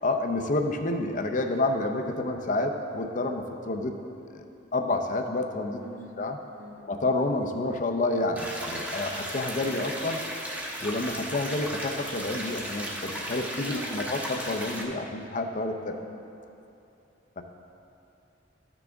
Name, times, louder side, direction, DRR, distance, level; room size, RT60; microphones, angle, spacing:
voice 1, 0.0-3.9 4.3-4.5 4.7-5.8 6.2-6.4 6.8-10.2 10.8-15.9 17.4-17.5, left 2 dB, 45° left, 5 dB, 0.6 m, -29 dB
voice 2, 5.8-6.3 6.5-6.9 11.0-11.1 13.5-14.1 15.8-16.2, equal, 70° right, -3 dB, 1.5 m, -46 dB
sound 1, 8.4-14.8, equal, 10° right, 0.8 m, -35 dB
13.0 x 6.1 x 3.5 m, 2.8 s
head